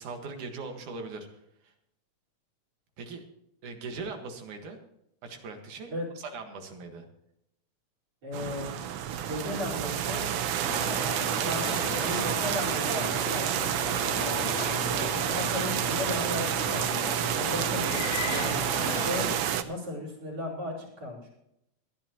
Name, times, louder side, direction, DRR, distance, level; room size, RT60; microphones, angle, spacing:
voice 1, 0.0-1.7 3.0-3.2 3.6-4.8 5.2-7.0, right 4 dB, 90° right, 5 dB, 3.2 m, -40 dB
voice 2, 8.2-8.8 9.2-10.2 11.4-13.7 14.7-21.3, left 2 dB, 55° right, 0 dB, 5.8 m, -36 dB
sound 1, 8.3-19.6, right 10 dB, 70° right, 1.4 m, -29 dB
sound 2, 10.7-19.4, left 10 dB, 70° left, 1.8 m, -37 dB
20.0 x 12.0 x 3.0 m, 0.78 s
omnidirectional pair, 3.4 m